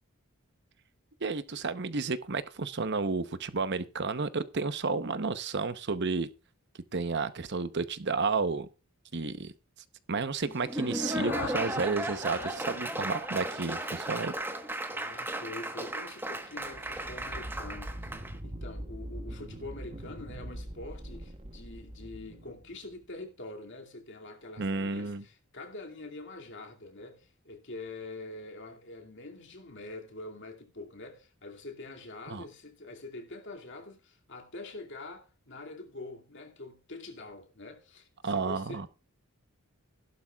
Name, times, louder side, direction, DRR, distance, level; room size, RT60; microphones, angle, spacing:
voice 1, 1.2-6.3 6.9-8.7 9.1-9.5 10.1-14.3 24.6-25.2 32.3-32.4 38.2-38.9, right 4 dB, 50° right, 0.9 m, -31 dB
Laughter / Applause, 10.5-18.3, right 1 dB, 10° right, 1.2 m, -35 dB
sound 1, 10.6-14.6, left 4 dB, 75° left, 1.9 m, -43 dB
voice 2, 14.9-18.1 18.4-38.9, left 2 dB, 55° left, 2.4 m, -45 dB
sound 2, 16.6-23.0, right 1 dB, 25° right, 1.0 m, -43 dB
15.5 x 12.0 x 2.4 m
head